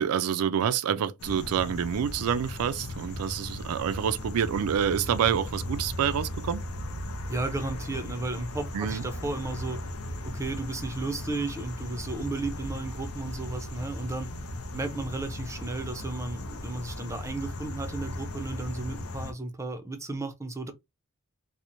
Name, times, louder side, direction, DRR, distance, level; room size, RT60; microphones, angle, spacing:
voice 1, 0.0-6.7 8.7-9.0, right 8 dB, 85° right, 0.4 m, -27 dB
sound 1, 1.2-19.3, left 1 dB, 70° left, 0.5 m, -37 dB
voice 2, 7.3-9.9 10.2-14.3 14.7-20.7, right 2 dB, 15° right, 0.4 m, -34 dB
2.9 x 2.0 x 2.5 m
head